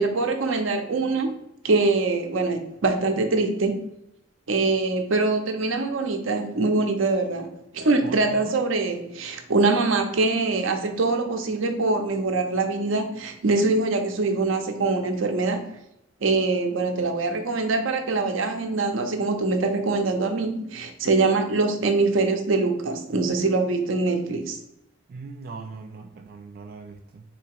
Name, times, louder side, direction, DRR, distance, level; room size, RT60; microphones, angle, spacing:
voice 1, 0.0-3.8 4.5-7.5 7.7-15.6 16.2-24.6, right 3 dB, 80° right, 5 dB, 0.7 m, -23 dB
voice 2, 8.0-8.5 25.1-27.2, right 4 dB, 50° right, 4 dB, 0.3 m, -40 dB
4.0 x 2.9 x 4.5 m, 0.83 s
head